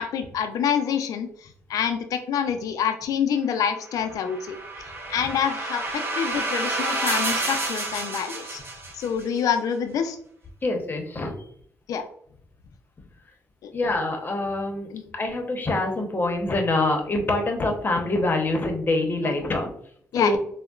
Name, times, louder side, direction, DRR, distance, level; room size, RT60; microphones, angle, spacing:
voice 1, 0.0-4.6 5.1-8.6 8.9-10.2 11.9-12.1 13.6-13.7 14.9-15.0 19.2-19.3 20.1-20.4, left 8 dB, 75° left, 7 dB, 0.3 m, -27 dB
sound 1, 4.0-9.2, right 2 dB, 40° right, 0.9 m, -29 dB
voice 2, 10.6-11.3 13.7-19.7 20.1-20.4, left 2 dB, 35° left, 3 dB, 0.7 m, -25 dB
3.6 x 2.0 x 2.3 m, 0.63 s
cardioid pair, 75°, 6 cm